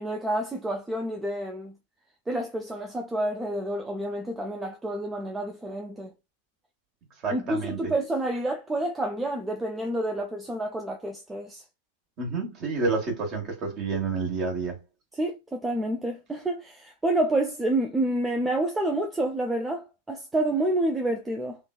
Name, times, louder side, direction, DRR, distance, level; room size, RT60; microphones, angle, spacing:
voice 1, 0.0-1.7 2.3-6.1 7.3-11.6 15.2-21.6, right 1 dB, 10° right, 0.4 m, -28 dB
voice 2, 7.2-7.9 12.2-14.8, right 4 dB, 35° right, 1.2 m, -29 dB
3.1 x 2.2 x 2.3 m
figure-of-eight pair, 90°, 0 cm